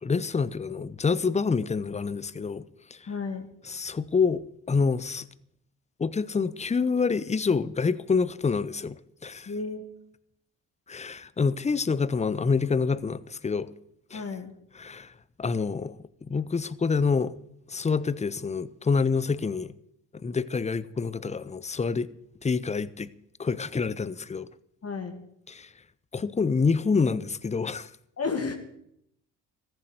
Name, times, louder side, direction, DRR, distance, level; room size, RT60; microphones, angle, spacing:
voice 1, 0.0-2.6 2.9-3.0 3.6-5.2 6.0-9.5 10.9-13.7 14.1-14.2 14.7-15.1 15.4-15.9 16.2-17.4 17.7-19.7 20.2-22.1 22.4-23.1 23.4-24.5 25.5-25.7 26.1-27.9, left 5 dB, 15° left, 0.7 m, -27 dB
voice 2, 3.1-3.5 9.5-9.8 14.1-14.5 24.8-25.2 28.2-28.5, left 4 dB, 40° left, 2.3 m, -32 dB
14.5 x 8.0 x 9.2 m
hypercardioid pair, 60°, 39 cm